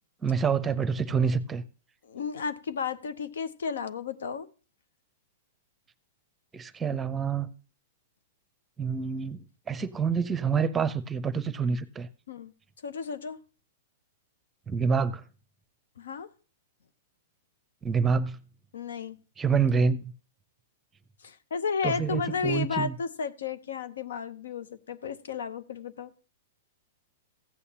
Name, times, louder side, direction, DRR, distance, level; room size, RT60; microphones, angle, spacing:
voice 1, 0.2-1.6 6.5-7.5 8.8-12.1 14.7-15.2 17.8-18.4 19.4-20.0 21.8-23.0, right 6 dB, 15° right, 0.7 m, -27 dB
voice 2, 2.0-4.5 12.3-12.5 12.8-13.4 16.0-16.3 18.7-19.2 21.2-26.1, left 5 dB, 70° left, 0.7 m, -33 dB
14.5 x 8.3 x 2.8 m
hypercardioid pair, 110°, 0 cm